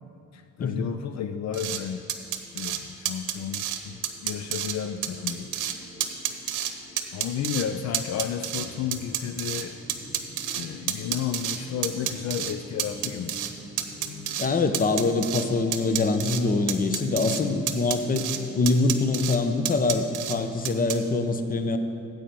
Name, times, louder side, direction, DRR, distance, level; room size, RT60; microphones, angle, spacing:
voice 1, 0.3-2.1 2.5-5.5 7.1-9.7 10.5-13.3, left 8 dB, 65° left, 8 dB, 0.5 m, -32 dB
sound 1, 1.5-1.8 2.1-2.8 3.1-3.8 4.0-4.7 5.0-5.7 6.0-6.7 7.0-7.6 7.9-9.6 9.9-11.6 11.8-12.5 12.8-13.5 13.8-14.5 14.7-15.5 15.7-16.4 16.7-17.4 17.7-18.4 18.7-19.4 19.6-20.4 20.6-21.0, right 11 dB, 80° right, 0.8 m, -29 dB
sound 2, 2.0-19.2, equal, 10° left, 2.4 m, -47 dB
voice 2, 14.4-18.3 18.5-21.8, left 3 dB, 30° left, 8 dB, 0.7 m, -24 dB
9.2 x 7.8 x 5.3 m, 2.8 s
cardioid pair, 90°, 30 cm